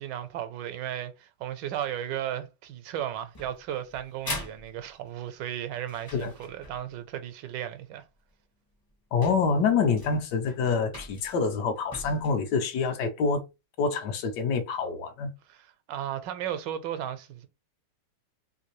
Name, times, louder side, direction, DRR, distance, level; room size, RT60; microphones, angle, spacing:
voice 1, 0.0-8.0 15.5-17.5, right 10 dB, 85° right, 1.3 m, -35 dB
sound 1, 3.3-7.0 8.3-8.4 8.9-9.0 9.2-12.3, left 1 dB, 30° left, 0.4 m, -42 dB
voice 2, 9.1-13.4 13.8-15.3, left 5 dB, 75° left, 1.2 m, -26 dB
3.3 x 2.6 x 2.9 m
omnidirectional pair, 1.9 m